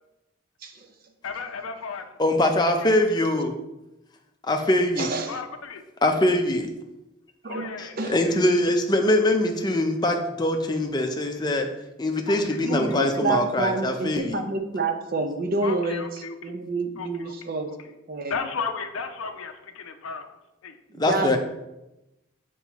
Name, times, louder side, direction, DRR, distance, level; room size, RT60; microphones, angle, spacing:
voice 1, 1.2-2.1 3.0-3.1 5.3-5.8 7.5-8.0 8.2-8.4 9.0-9.3 12.3-13.0 15.6-16.6 17.0-17.3 18.3-20.3 20.6-20.8, left 5 dB, 80° left, 7 dB, 0.6 m, -35 dB
voice 2, 2.2-3.5 4.5-5.1 6.0-6.7 8.1-11.7 12.0-14.4 21.0-21.4, left 1 dB, 20° left, 3 dB, 0.5 m, -22 dB
voice 3, 5.0-5.4 7.4-8.2 12.6-16.1 16.4-17.7 18.1-18.5 20.9-21.4, right 3 dB, 45° right, 5 dB, 0.5 m, -28 dB
7.3 x 4.5 x 3.0 m, 0.94 s
head